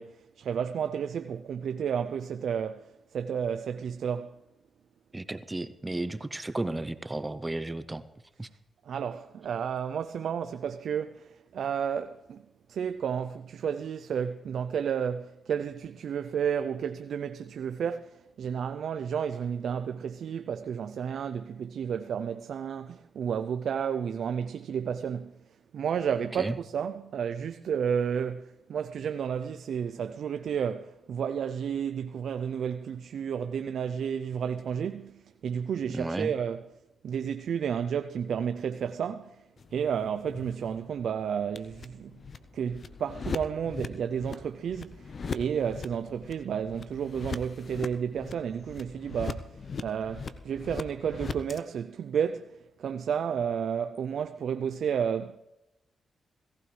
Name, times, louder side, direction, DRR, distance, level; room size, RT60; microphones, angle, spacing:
voice 1, 0.0-4.4 8.8-12.4 12.7-25.3 25.7-36.6 37.0-39.4 39.7-42.2 42.5-55.4, right 7 dB, 75° right, 0.4 m, -32 dB
voice 2, 5.1-8.0 8.4-8.5 26.4-26.5 35.9-36.3, right 2 dB, 20° right, 0.7 m, -33 dB
sound 1, 39.6-51.6, left 5 dB, 55° left, 0.7 m, -40 dB
17.0 x 15.5 x 3.3 m
cardioid pair, 60°, 0 cm